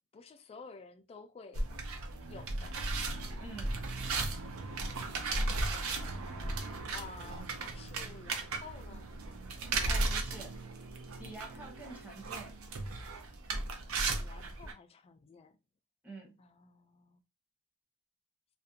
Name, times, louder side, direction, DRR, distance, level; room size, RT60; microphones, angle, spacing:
voice 1, 0.1-1.7 2.3-2.8 5.7-6.3 6.9-9.1 14.1-15.6 16.4-17.2, left 4 dB, 25° left, 0.3 m, -52 dB
sound 1, 1.5-14.7, right 3 dB, 65° right, 0.5 m, -36 dB
voice 2, 3.4-3.8 9.9-10.6 11.2-12.6 16.0-16.4, right 2 dB, 5° right, 0.8 m, -48 dB
2.5 x 2.1 x 2.7 m
head